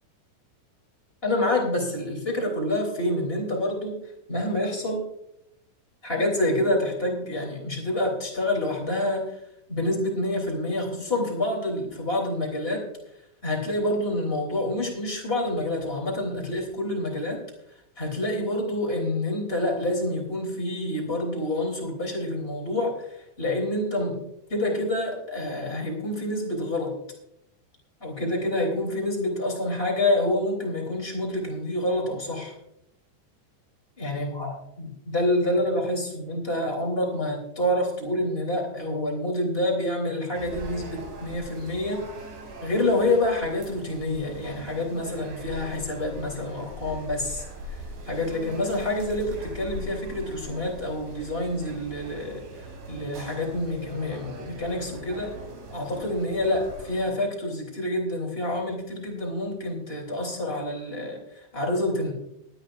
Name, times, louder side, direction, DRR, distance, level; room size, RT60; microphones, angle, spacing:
voice 1, 1.2-4.0 4.3-5.0 6.0-9.3 9.7-12.8 13.4-17.4 18.0-24.2 24.5-26.9 28.0-32.5 34.0-42.0 42.6-52.4 52.9-55.3 55.7-62.1, left 1 dB, 15° left, -1 dB, 2.9 m, -27 dB
sound 1, 40.3-57.1, equal, 70° right, 5.9 m, -41 dB
19.5 x 12.5 x 2.6 m, 0.79 s
omnidirectional pair, 5.6 m